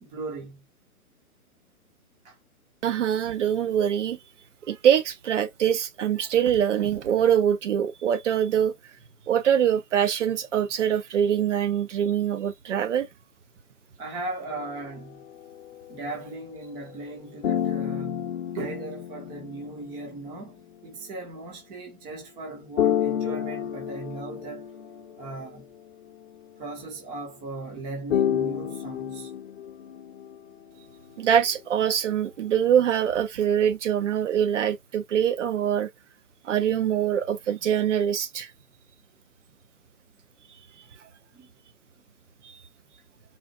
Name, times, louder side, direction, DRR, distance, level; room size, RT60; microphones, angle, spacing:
voice 1, 0.0-0.6 2.2-2.4 14.0-15.2 15.9-20.5 20.8-24.7 25.2-25.6 26.6-29.3 36.6-36.7 41.3-41.5, right 3 dB, 10° right, 0.6 m, -38 dB
voice 2, 2.8-4.2 4.7-8.7 9.3-13.1 31.2-35.9 36.4-38.5 42.4-42.6, right 9 dB, 55° right, 0.8 m, -24 dB
sound 1, 14.5-17.2 17.4-21.0 22.8-26.5 28.1-30.4, left 10 dB, 45° left, 0.8 m, -31 dB
4.1 x 2.1 x 2.4 m
hypercardioid pair, 145°, 45 cm